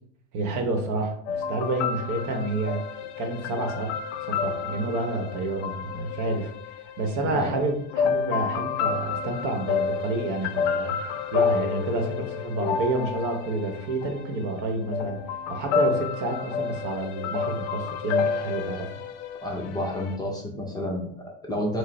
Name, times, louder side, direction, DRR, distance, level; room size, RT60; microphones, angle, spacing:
voice 1, 0.3-2.8 3.2-3.9 4.2-15.2 15.5-18.9, right 2 dB, 55° right, 4 dB, 0.9 m, -29 dB
sound 1, 1.3-7.3 7.9-20.2, left 6 dB, 90° left, 0.5 m, -30 dB
voice 2, 19.4-21.8, left 1 dB, 10° left, -1 dB, 0.6 m, -30 dB
4.7 x 2.0 x 3.2 m, 0.66 s
supercardioid pair, 120°, 35 cm